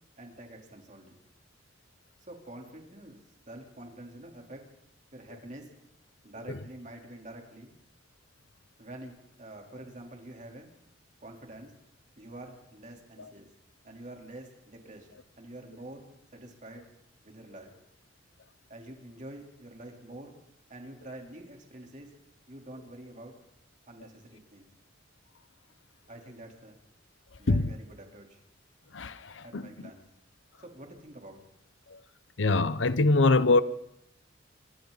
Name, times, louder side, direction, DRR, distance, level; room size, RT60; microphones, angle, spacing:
voice 1, 0.2-1.1 2.3-3.2 3.5-4.6 5.1-5.7 6.2-7.7 8.8-10.7 11.2-11.7 12.2-13.5 13.8-15.1 15.4-16.9 17.2-17.7 18.7-20.3 20.7-22.1 22.5-23.3 23.9-24.7 26.1-26.8 27.4-28.4 29.4-30.0 30.6-31.4, right 1 dB, 40° right, 3.8 m, -47 dB
voice 2, 28.9-29.6 32.4-33.6, left 3 dB, 70° left, 0.9 m, -23 dB
26.5 x 25.0 x 4.1 m
head